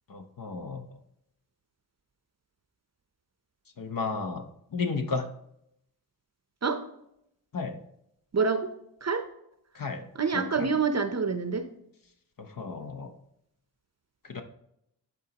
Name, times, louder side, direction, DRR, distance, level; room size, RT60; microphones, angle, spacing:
voice 1, 0.1-0.8 3.8-5.3 7.5-7.8 9.7-10.1 10.3-10.7 12.4-13.1 14.3-14.4, left 4 dB, 50° left, 6 dB, 0.9 m, -33 dB
voice 2, 8.3-8.7 9.0-9.2 10.2-11.6, right 5 dB, 40° right, 9 dB, 0.7 m, -26 dB
11.5 x 4.0 x 2.9 m, 0.77 s
cardioid pair, 60°, 42 cm